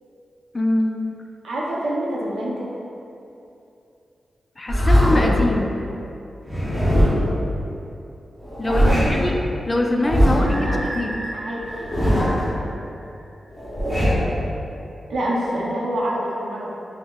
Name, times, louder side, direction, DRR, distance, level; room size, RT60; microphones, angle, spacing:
voice 1, 0.5-1.1 4.6-5.8 8.6-9.3 9.7-11.2, left 1 dB, 30° left, 1 dB, 0.3 m, -23 dB
voice 2, 1.4-2.7 8.6-9.2 10.2-10.9 11.3-11.6 15.1-16.8, right 1 dB, 80° right, -5 dB, 0.6 m, -26 dB
sound 1, 4.7-5.4 6.5-7.4 8.4-9.3 10.0-10.6 11.7-12.5 13.5-14.4, equal, 10° left, 0.8 m, -19 dB
sound 2, 10.4-13.3, right 1 dB, 45° right, 1.1 m, -35 dB
5.2 x 2.0 x 2.3 m, 2.7 s
cardioid pair, 65°, 0 cm